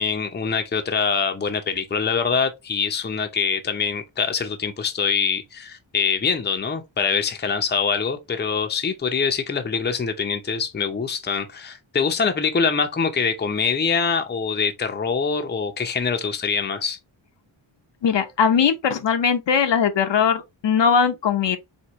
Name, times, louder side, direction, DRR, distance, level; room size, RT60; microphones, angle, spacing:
voice 1, 0.0-17.0, left 5 dB, 20° left, 0.6 m, -24 dB
voice 2, 18.0-21.6, left 6 dB, 60° left, 0.7 m, -20 dB
4.5 x 2.9 x 2.9 m
wide cardioid pair, 120°, 49 cm